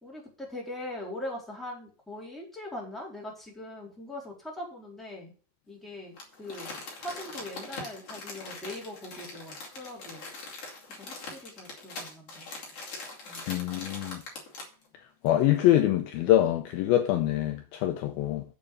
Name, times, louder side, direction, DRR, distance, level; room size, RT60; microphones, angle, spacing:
voice 1, 0.0-5.3 5.7-10.3 10.9-12.5 13.3-13.4, left 1 dB, ahead, 3.6 m, -41 dB
Crumpling crinkling, 6.2-14.8 15.3-15.4, left 3 dB, 40° left, 3.0 m, -42 dB
voice 2, 13.5-14.2 15.2-18.4, left 13 dB, 80° left, 2.2 m, -24 dB
7.8 x 7.3 x 6.9 m
omnidirectional pair, 4.9 m